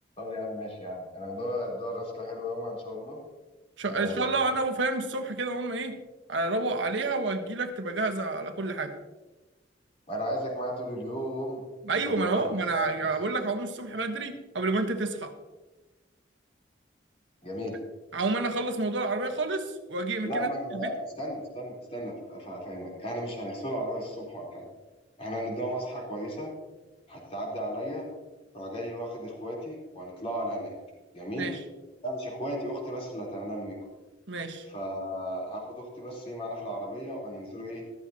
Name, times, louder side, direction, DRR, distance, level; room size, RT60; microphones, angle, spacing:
voice 1, 0.2-3.2 3.9-4.6 10.1-11.6 11.9-12.5 12.7-12.9 13.3-13.4 17.4-17.7 20.3-24.7 25.2-26.5 27.1-28.1 28.5-30.7 31.1-31.5 32.0-33.8 34.7-37.8, equal, 35° left, -2 dB, 3.9 m, -35 dB
voice 2, 3.8-6.0 6.3-8.9 11.8-15.3 18.1-20.9 31.3-31.6 34.3-34.7, right 3 dB, 85° right, 5 dB, 1.3 m, -29 dB
14.5 x 13.0 x 2.9 m, 1.1 s
head